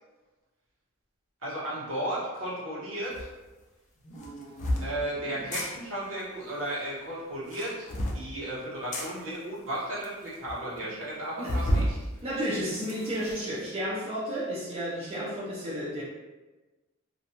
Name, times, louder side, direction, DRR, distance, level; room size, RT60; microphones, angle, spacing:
voice 1, 1.4-3.3 4.8-12.0, right 1 dB, 75° right, -8 dB, 1.0 m, -34 dB
sound 1, 3.1-3.3 4.2-4.9 5.4-5.7 7.3-8.2 8.9-9.1 9.7-9.8 10.0-10.1 10.5-10.6 11.5-11.9 12.4-13.3, equal, 35° left, 0.4 m, -30 dB
sound 2, 4.0-6.0, right 2 dB, 85° left, 0.6 m, -46 dB
voice 2, 12.2-16.0, equal, 30° right, -8 dB, 0.4 m, -32 dB
2.5 x 2.2 x 2.8 m, 1.2 s
head